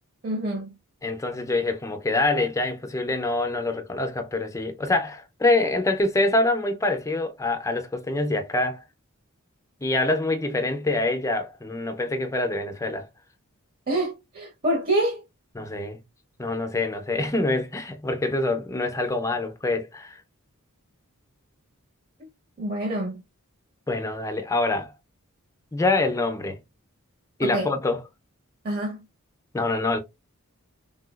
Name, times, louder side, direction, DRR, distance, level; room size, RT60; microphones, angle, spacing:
voice 1, 0.2-0.7 13.9-15.2 22.6-23.2 27.4-27.7 28.6-29.0, right 1 dB, 40° right, 0.7 m, -26 dB
voice 2, 1.0-8.8 9.8-13.1 15.5-16.0 16.4-20.2 23.9-24.9 25.7-26.6 27.4-28.0 29.5-30.0, left 2 dB, 15° left, 0.5 m, -25 dB
3.7 x 2.3 x 2.2 m
head